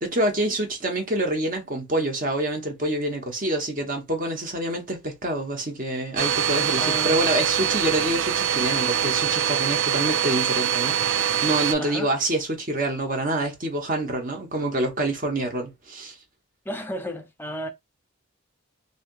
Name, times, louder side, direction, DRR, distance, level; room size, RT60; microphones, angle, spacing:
voice 1, 0.0-16.2, right 1 dB, 40° right, 0.9 m, -26 dB
Domestic sounds home sounds, 6.2-11.7, right 9 dB, 60° right, 0.4 m, -24 dB
voice 2, 6.8-7.2 7.6-7.7 11.8-12.1 16.7-17.7, equal, 10° left, 0.5 m, -33 dB
3.3 x 2.7 x 2.3 m
head